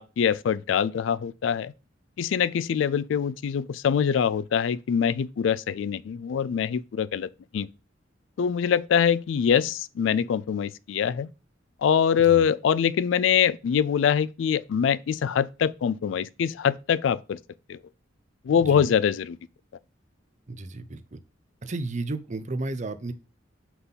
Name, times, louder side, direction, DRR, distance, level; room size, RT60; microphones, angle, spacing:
voice 1, 0.0-1.7 2.2-7.7 8.4-11.3 11.8-17.4 17.7-17.8 18.5-19.4, left 8 dB, 70° left, 0.3 m, -24 dB
voice 2, 20.5-21.2 21.6-23.1, right 2 dB, 40° right, 0.6 m, -33 dB
5.7 x 4.0 x 5.6 m
head